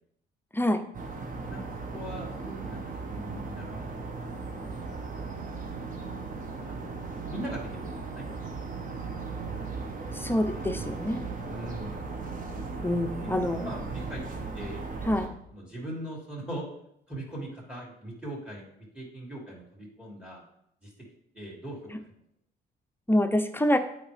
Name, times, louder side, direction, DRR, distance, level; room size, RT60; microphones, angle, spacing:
sound 1, 0.9-15.3, right 4 dB, 40° right, 1.2 m, -37 dB
voice 1, 1.9-3.9 6.7-6.8 7.3-8.4 11.5-12.1 13.2-14.8 15.5-16.7 17.1-20.4 20.8-20.9 21.3-21.9, right 1 dB, 5° right, -3 dB, 2.5 m, -40 dB
voice 2, 10.1-11.2 12.8-13.7 15.1-15.3 23.1-23.8, left 1 dB, 10° left, 7 dB, 0.6 m, -26 dB
8.7 x 4.6 x 3.4 m, 0.75 s
cardioid pair, 90°, 20 cm